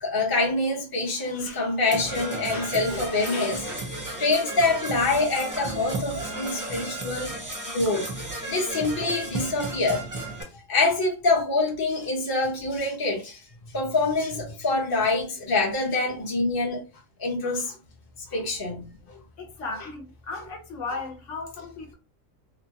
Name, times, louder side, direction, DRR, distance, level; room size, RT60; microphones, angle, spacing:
voice 1, 0.0-7.3 7.7-8.0 8.5-10.1 10.7-13.4 13.7-16.8 17.2-17.7 18.3-18.8, left 3 dB, 20° left, 0.6 m, -25 dB
Percussion / Brass instrument, 1.9-10.4, right 2 dB, 20° right, 0.6 m, -34 dB
voice 2, 19.4-21.9, left 3 dB, 70° left, 0.9 m, -35 dB
3.0 x 2.1 x 2.8 m
omnidirectional pair, 1.4 m